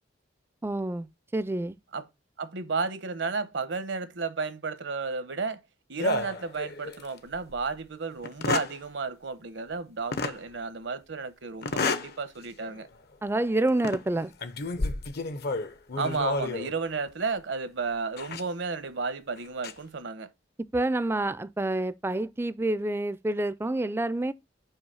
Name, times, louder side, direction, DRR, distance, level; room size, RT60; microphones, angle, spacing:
voice 1, 0.6-1.1 1.3-1.8 13.2-14.3 20.7-24.3, right 2 dB, 15° right, 0.4 m, -28 dB
voice 2, 2.4-5.6 5.9-12.9 16.0-20.3, right 4 dB, 75° right, 1.0 m, -32 dB
sound 1, 6.0-7.1 7.5-7.6 8.2-8.8 10.1-10.4 11.6-12.1 12.6-12.8 13.7-14.0 14.4-16.7 18.2-18.4 19.4-19.7, left 3 dB, 60° left, 0.7 m, -30 dB
5.6 x 4.9 x 5.5 m
head